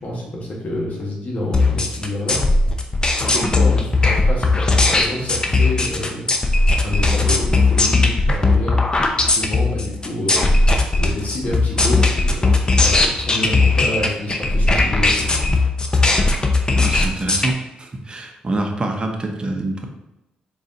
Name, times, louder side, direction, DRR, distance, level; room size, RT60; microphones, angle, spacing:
voice 1, 0.0-2.4 3.2-6.3 6.8-10.5 10.9-15.5, left 1 dB, 50° left, -3 dB, 1.1 m, -28 dB
sound 1, 1.5-17.5, left 3 dB, 25° left, 0.6 m, -17 dB
voice 2, 16.7-19.9, right 2 dB, 30° right, 3 dB, 0.7 m, -26 dB
3.9 x 2.4 x 3.9 m, 0.93 s
supercardioid pair, 65°, 3 cm